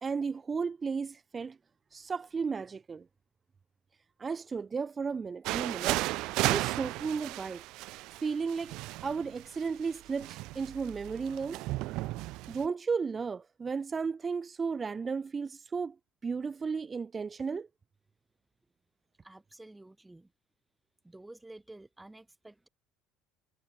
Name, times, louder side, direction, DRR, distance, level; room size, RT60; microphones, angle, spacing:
voice 1, 0.0-1.6 1.9-3.0 4.2-6.1 6.4-7.6 8.2-8.7 9.0-11.6 12.5-16.0 16.2-17.7, right 5 dB, 25° right, 2.2 m, -34 dB
sound 1, 5.5-12.7, right 19 dB, 70° right, 0.3 m, -34 dB
voice 2, 19.2-20.3 21.0-22.7, right 2 dB, 10° right, 3.6 m, -51 dB
cardioid pair, 115°, 0 cm